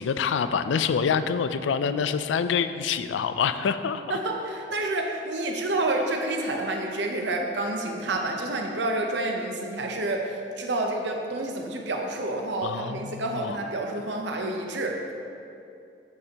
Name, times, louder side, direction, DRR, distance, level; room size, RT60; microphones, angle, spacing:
voice 1, 0.0-4.2 12.6-13.6, left 6 dB, 90° left, 11 dB, 0.3 m, -26 dB
voice 2, 4.1-15.1, right 2 dB, 75° right, 2 dB, 0.8 m, -29 dB
8.2 x 6.7 x 2.9 m, 2.6 s
head